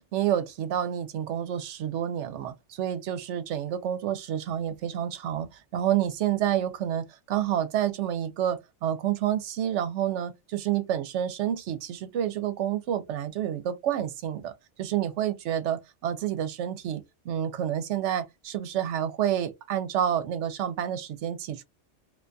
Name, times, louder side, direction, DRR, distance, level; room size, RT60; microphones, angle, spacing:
voice 1, 0.0-21.6, right 10 dB, 80° right, 0.9 m, -29 dB
2.4 x 2.3 x 2.5 m
omnidirectional pair, 1.2 m